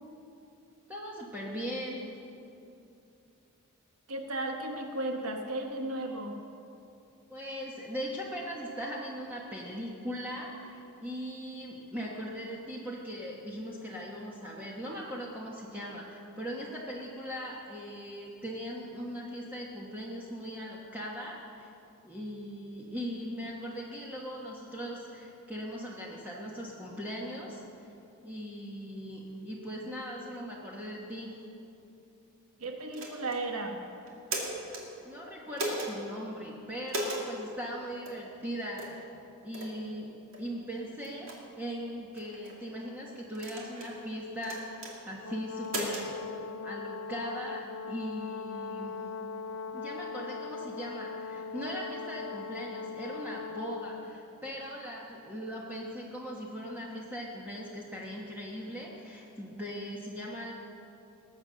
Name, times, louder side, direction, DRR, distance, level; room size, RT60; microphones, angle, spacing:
voice 1, 0.9-2.1 7.3-21.7 22.0-27.9 28.2-31.3 35.0-39.1 39.4-40.1 40.4-49.0 49.7-60.5, equal, 10° right, -5 dB, 1.4 m, -39 dB
voice 2, 4.1-6.4 32.6-33.8, right 2 dB, 90° right, 3 dB, 1.4 m, -35 dB
sound 1, 32.9-33.4 34.1-34.8 35.6-35.9 36.9-37.2 38.1-38.2 38.8-39.0 39.5-39.7 40.3-40.4 41.0-41.4 42.1-42.5 43.3-43.9 44.4-44.9 45.6-46.1, right 1 dB, 65° right, 2.6 m, -36 dB
Brass instrument, 45.2-54.2, left 5 dB, 65° left, 0.6 m, -40 dB
21.0 x 8.2 x 6.4 m, 2.7 s
head